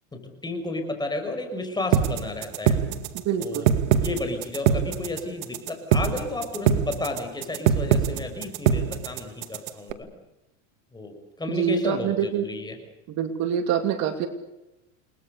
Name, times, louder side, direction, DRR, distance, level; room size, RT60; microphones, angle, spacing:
voice 1, 0.1-2.8 3.4-10.1 10.9-12.8, left 2 dB, 10° left, 5 dB, 6.2 m, -32 dB
sound 1, 1.9-9.9, right 8 dB, 60° right, 2.3 m, -23 dB
voice 2, 3.2-3.7 11.5-12.4 13.2-14.3, right 8 dB, 45° right, 7 dB, 2.6 m, -25 dB
30.0 x 20.5 x 6.8 m, 0.96 s
supercardioid pair, 130°, 39 cm